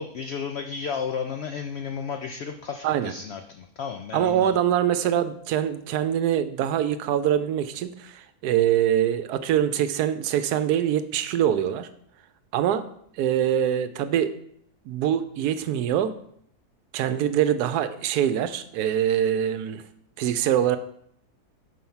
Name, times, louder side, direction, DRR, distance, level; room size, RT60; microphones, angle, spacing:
voice 1, 0.0-4.6, left 6 dB, 85° left, 5 dB, 0.5 m, -33 dB
voice 2, 4.1-11.9 12.5-12.9 13.2-14.3 14.9-16.1 16.9-19.8 20.2-20.8, right 10 dB, 80° right, 12 dB, 1.1 m, -24 dB
5.4 x 4.5 x 5.5 m, 0.69 s
omnidirectional pair, 1.6 m